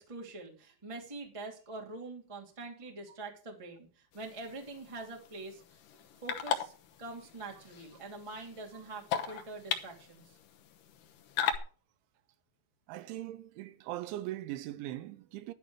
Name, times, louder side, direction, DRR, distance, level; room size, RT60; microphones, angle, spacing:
voice 1, 0.0-5.6 6.2-6.7 7.0-10.4, right 3 dB, 15° right, 1.1 m, -44 dB
sound 1, 4.1-11.6, left 8 dB, 80° left, 1.9 m, -39 dB
voice 2, 12.9-15.5, right 14 dB, 85° right, 3.1 m, -40 dB
11.0 x 11.0 x 4.8 m
omnidirectional pair, 5.4 m